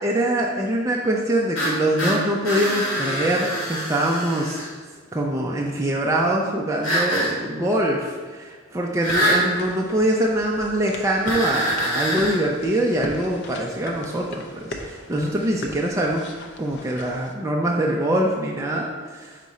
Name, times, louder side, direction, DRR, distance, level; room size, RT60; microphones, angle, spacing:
voice 1, 0.0-4.6 5.1-16.2 16.6-19.4, right 1 dB, 15° right, -2 dB, 0.4 m, -23 dB
sound 1, 1.5-4.7 6.8-7.3 9.0-9.5 11.3-12.4, equal, 75° left, 1.8 m, -25 dB
sound 2, 9.0-17.3, left 2 dB, 55° left, 0.6 m, -39 dB
5.1 x 4.6 x 4.1 m, 1.5 s
head